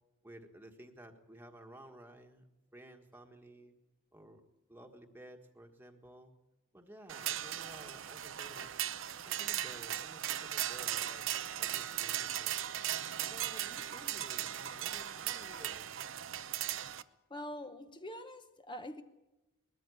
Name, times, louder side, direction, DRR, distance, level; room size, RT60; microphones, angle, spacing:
voice 1, 0.2-2.5 2.7-3.7 4.1-4.4 4.7-6.3 6.7-8.7 9.2-11.3 11.6-12.5 13.2-15.9, right 1 dB, 10° right, 1.5 m, -54 dB
sound 1, 7.1-17.0, right 11 dB, 60° right, 0.7 m, -38 dB
voice 2, 17.3-19.0, left 1 dB, 20° left, 0.9 m, -44 dB
20.5 x 14.0 x 9.8 m
head